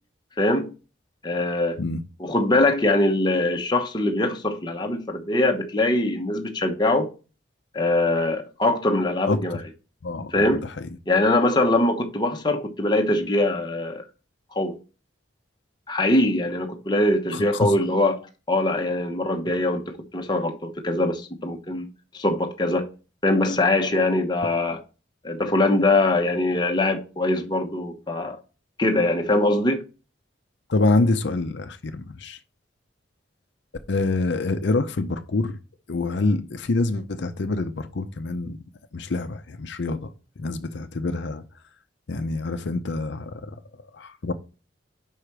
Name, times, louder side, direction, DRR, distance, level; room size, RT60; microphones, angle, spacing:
voice 1, 0.4-0.7 1.2-1.8 2.2-7.1 7.7-9.6 10.3-10.6 11.1-14.0 14.5-14.8 15.9-18.2 18.5-21.9 22.1-22.9 23.2-24.8 25.2-28.4 28.8-29.8, left 2 dB, 25° left, 0.9 m, -22 dB
voice 2, 9.3-9.6 10.0-10.9 17.3-17.7 30.7-32.4 33.9-35.6 35.9-38.6 38.9-40.1 40.4-41.4 42.1-43.6 43.9-44.3, left 2 dB, 65° left, 0.6 m, -26 dB
5.5 x 5.0 x 6.0 m
head